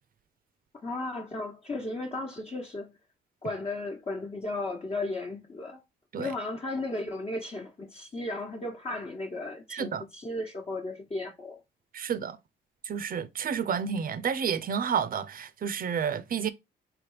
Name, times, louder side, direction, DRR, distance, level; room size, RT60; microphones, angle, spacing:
voice 1, 0.8-2.9 3.4-5.8 6.2-11.6, left 2 dB, 30° left, 1.1 m, -35 dB
voice 2, 9.7-10.0 11.9-12.4 12.8-16.5, right 7 dB, 45° right, 0.6 m, -30 dB
3.4 x 3.1 x 4.8 m
cardioid pair, 90°, 20 cm